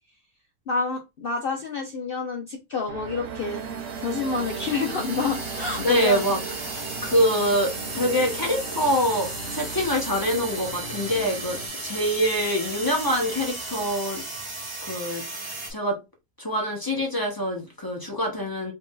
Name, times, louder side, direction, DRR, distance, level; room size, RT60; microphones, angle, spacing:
voice 1, 0.7-3.6 4.0-6.3, left 4 dB, 65° left, 0.5 m, -28 dB
sound 1, 2.9-11.7, right 5 dB, 65° right, 0.9 m, -37 dB
sound 2, 3.3-15.7, right 2 dB, 30° right, 0.6 m, -35 dB
voice 2, 5.8-6.4 6.7-14.2 14.8-15.2 15.7-16.0 16.4-18.7, equal, 20° left, 0.6 m, -25 dB
3.1 x 2.6 x 3.6 m
omnidirectional pair, 1.6 m